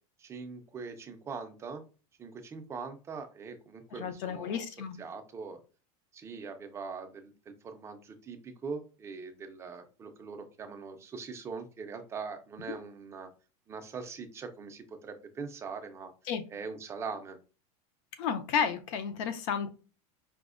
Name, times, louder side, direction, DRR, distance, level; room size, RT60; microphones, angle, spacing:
voice 1, 0.2-1.8 2.2-4.6 5.0-5.6 6.1-13.3 13.7-16.1 16.5-17.4, right 5 dB, 15° right, 6 dB, 0.4 m, -42 dB
voice 2, 4.0-4.9 12.7-12.8 16.3-16.4 18.2-19.7, left 7 dB, 55° left, 9 dB, 0.6 m, -32 dB
4.8 x 2.0 x 2.4 m, 0.35 s
supercardioid pair, 155°, 18 cm